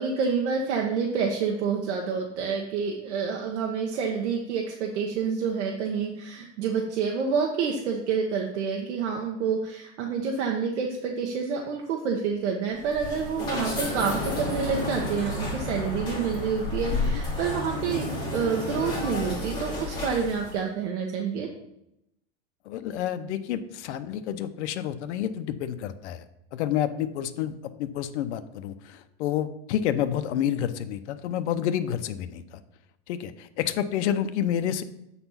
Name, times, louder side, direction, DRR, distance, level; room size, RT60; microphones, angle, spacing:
voice 1, 0.0-21.5, right 6 dB, 80° right, 1 dB, 1.2 m, -28 dB
sound 1, 12.7-20.6, left 1 dB, 15° left, 2.6 m, -31 dB
voice 2, 16.9-17.2 22.7-26.2 26.5-32.6 33.1-34.8, left 10 dB, 80° left, 10 dB, 0.7 m, -29 dB
7.9 x 4.2 x 5.6 m, 0.83 s
supercardioid pair, 155°, 34 cm